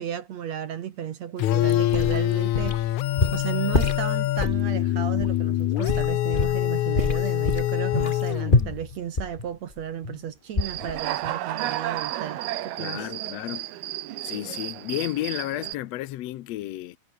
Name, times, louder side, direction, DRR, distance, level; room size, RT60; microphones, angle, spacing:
voice 1, 0.0-13.1, right 9 dB, 60° right, 2.1 m, -34 dB
sound 1, 1.4-8.9, left 14 dB, 70° left, 2.0 m, -25 dB
sound 2, 1.7-2.9 3.2-4.6 5.2-5.3 5.9-6.7 6.9-10.2 10.5-11.0 11.2-11.3, left 3 dB, 20° left, 1.3 m, -26 dB
Human voice / Cricket, 10.6-15.7, right 13 dB, 85° right, 3.3 m, -32 dB
voice 2, 12.8-13.7 14.2-17.0, left 15 dB, 90° left, 1.4 m, -32 dB
omnidirectional pair, 4.3 m